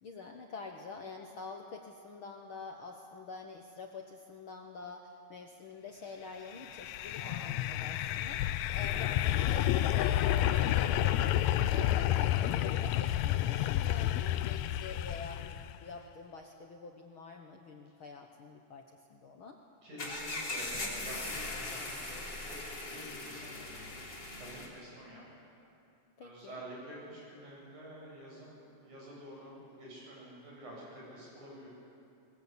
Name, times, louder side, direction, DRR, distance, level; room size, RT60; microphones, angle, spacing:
voice 1, 0.0-18.8 19.1-19.6 26.2-26.6, left 4 dB, 55° left, 2 dB, 1.5 m, -47 dB
sound 1, 6.6-15.8, left 12 dB, 75° left, 1.8 m, -30 dB
voice 2, 7.2-7.8 14.3-14.6 19.8-24.0 24.3-25.3 26.2-31.7, right 1 dB, 70° right, -5 dB, 9.3 m, -49 dB
sound 2, 20.0-24.7, left 2 dB, 35° left, 3.8 m, -40 dB
21.5 x 21.0 x 8.5 m, 2.6 s
omnidirectional pair, 3.6 m